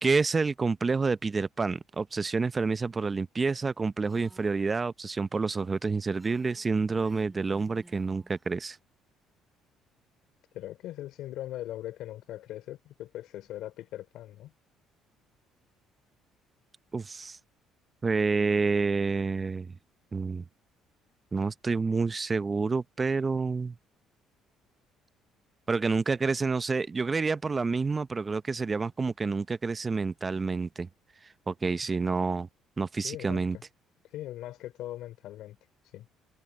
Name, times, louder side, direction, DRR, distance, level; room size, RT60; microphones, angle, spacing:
voice 1, 0.0-8.8 16.9-17.4 18.0-19.8 20.1-20.4 21.3-23.8 25.7-30.9 31.5-32.5 32.8-33.6, right 4 dB, 25° right, 0.7 m, -28 dB
Female speech woman speaking, 4.0-4.7 6.2-8.4, right 2 dB, 10° right, 2.4 m, -55 dB
voice 2, 10.5-14.5 33.0-33.6 34.1-35.6 35.9-36.1, left 13 dB, 75° left, 3.0 m, -40 dB
cardioid pair, 105°, 0 cm